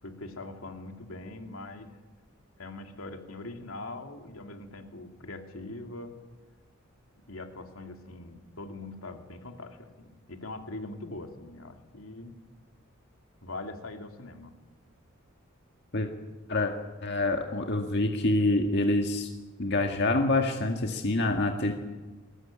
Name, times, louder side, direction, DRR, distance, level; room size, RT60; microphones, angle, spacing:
voice 1, 0.0-1.9 2.6-6.2 7.3-12.3 13.4-14.5, left 2 dB, 85° left, 5 dB, 2.7 m, -42 dB
voice 2, 17.0-19.3 19.6-21.7, left 2 dB, 55° left, 3 dB, 1.8 m, -26 dB
20.5 x 19.0 x 8.9 m, 1.3 s
head